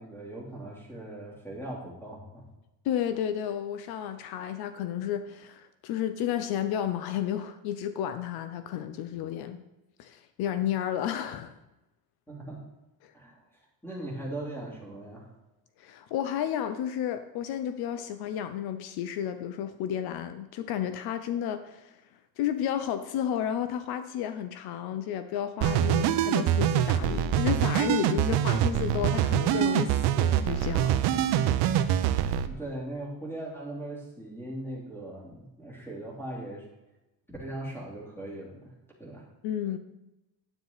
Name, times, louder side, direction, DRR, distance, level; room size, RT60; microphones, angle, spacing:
voice 1, 0.0-2.4 12.3-12.6 13.1-15.3 32.4-36.7 37.3-38.7 39.0-39.2, right 1 dB, 5° left, -3 dB, 3.2 m, -39 dB
voice 2, 2.8-9.6 10.0-11.6 13.0-13.1 15.8-22.0 22.4-31.0 39.4-39.8, left 10 dB, 75° left, 10 dB, 0.8 m, -32 dB
sound 1, 25.6-32.5, right 10 dB, 85° right, 0.8 m, -25 dB
10.0 x 9.1 x 4.0 m, 0.97 s
cardioid pair, 145°, 38 cm